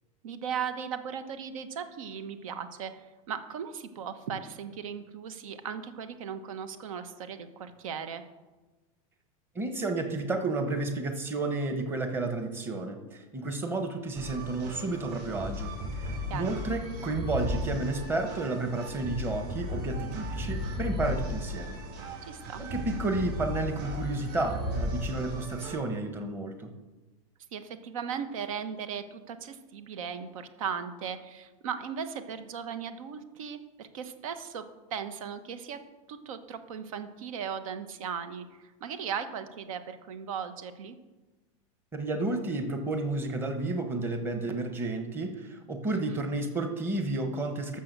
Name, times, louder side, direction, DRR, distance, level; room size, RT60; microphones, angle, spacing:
voice 1, 0.2-2.9 3.3-8.2 16.3-16.6 22.3-22.6 27.5-34.6 34.9-35.8 36.1-41.0 45.9-46.2, right 7 dB, 75° right, 10 dB, 1.3 m, -37 dB
voice 2, 9.5-15.7 16.0-21.8 22.6-26.7 41.9-47.8, right 2 dB, 10° right, 6 dB, 1.1 m, -31 dB
sound 1, 14.1-25.7, left 1 dB, 45° right, 4.8 m, -35 dB
12.5 x 6.9 x 6.8 m, 1.2 s
supercardioid pair, 170°, 18 cm